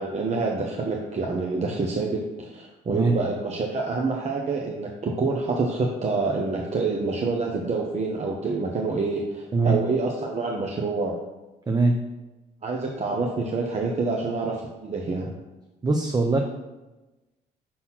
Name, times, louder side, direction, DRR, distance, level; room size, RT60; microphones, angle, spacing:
voice 1, 0.0-11.2 12.6-15.3, right 3 dB, 40° right, 0 dB, 1.0 m, -27 dB
voice 2, 11.7-12.0 15.8-16.4, right 3 dB, 20° right, 3 dB, 0.7 m, -21 dB
6.1 x 4.0 x 5.8 m, 1.1 s
supercardioid pair, 75°, 18 cm